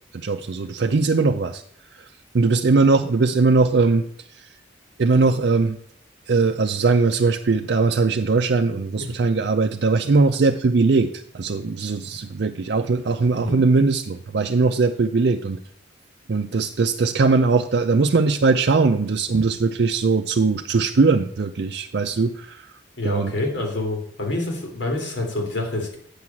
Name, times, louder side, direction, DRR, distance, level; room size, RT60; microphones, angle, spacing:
voice 1, 0.1-1.6 2.3-4.1 4.4-4.5 5.0-5.8 6.3-11.1 11.3-15.6 16.3-22.7 23.0-23.3, right 4 dB, 60° right, 5 dB, 0.5 m, -20 dB
voice 2, 23.0-26.0, left 2 dB, 70° left, 2 dB, 2.8 m, -27 dB
8.5 x 6.2 x 7.1 m, 0.65 s
head